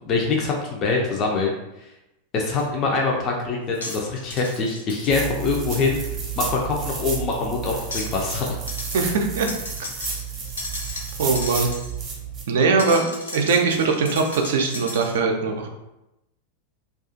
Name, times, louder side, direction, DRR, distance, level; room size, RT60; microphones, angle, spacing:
voice 1, 0.1-1.5 2.3-6.0 6.4-8.6, left 4 dB, 35° left, -1 dB, 0.4 m, -24 dB
sound 1, 2.6-2.7 3.7-5.1 5.7-5.8 7.8-8.4 8.7-9.0 9.5-12.0 12.8-15.2, left 2 dB, 75° left, 0.6 m, -35 dB
sound 2, 5.1-12.4, right 6 dB, 30° right, 0.7 m, -31 dB
voice 2, 8.9-9.5 11.2-11.7 12.5-15.7, right 4 dB, 55° right, 3 dB, 0.4 m, -21 dB
2.4 x 2.3 x 2.5 m, 0.93 s
figure-of-eight pair, 90°, 0 cm